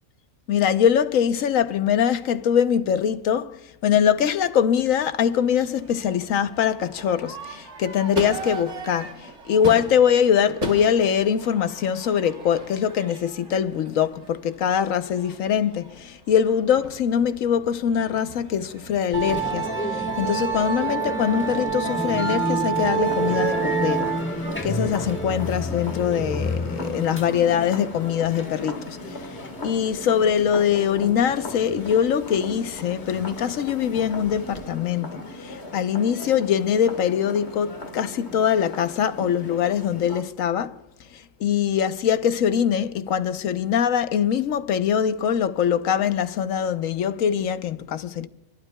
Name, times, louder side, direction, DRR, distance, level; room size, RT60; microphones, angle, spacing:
voice 1, 0.5-24.1 24.6-29.2 29.6-40.8 41.1-48.3, left 8 dB, 90° left, 1.2 m, -23 dB
Crowd / Fireworks, 4.8-23.8, right 3 dB, 65° right, 1.8 m, -40 dB
Musical instrument, 19.1-34.6, right 3 dB, 10° left, 1.2 m, -29 dB
sound 1, 23.0-40.2, left 2 dB, 55° left, 1.9 m, -38 dB
29.5 x 12.0 x 2.2 m
omnidirectional pair, 1.3 m